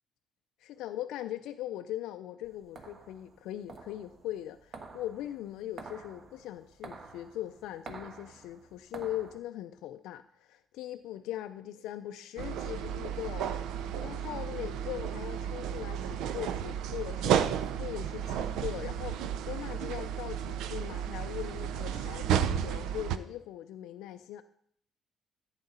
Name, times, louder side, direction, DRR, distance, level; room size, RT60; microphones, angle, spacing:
voice 1, 0.8-13.5 14.0-24.4, left 13 dB, 85° left, 8 dB, 0.4 m, -40 dB
sound 1, 2.4-9.4, right 4 dB, 45° right, 1.3 m, -49 dB
sound 2, 12.4-23.2, right 9 dB, 80° right, 0.5 m, -33 dB
11.0 x 8.9 x 4.2 m, 0.67 s
cardioid pair, 90°, 0 cm